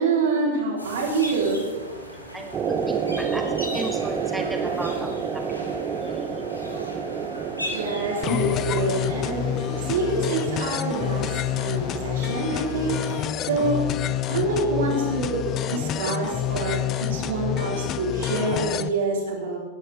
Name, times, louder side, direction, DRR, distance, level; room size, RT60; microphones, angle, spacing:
voice 1, 0.0-1.6 7.7-9.6 9.9-11.3 11.6-13.8 14.3-15.4 15.7-19.6, right 3 dB, 60° right, -2 dB, 4.3 m, -26 dB
sound 1, 0.8-13.3, left 1 dB, 85° left, 2.3 m, -39 dB
voice 2, 2.3-5.4 6.0-6.4 14.7-14.9, right 1 dB, 5° right, 3 dB, 2.1 m, -34 dB
sound 2, 2.5-17.8 18.1-18.2, right 6 dB, 25° right, 0.9 m, -32 dB
sound 3, 8.2-18.9, left 11 dB, 35° left, 0.5 m, -28 dB
18.0 x 11.0 x 3.7 m, 1.4 s
figure-of-eight pair, 90°, 0 cm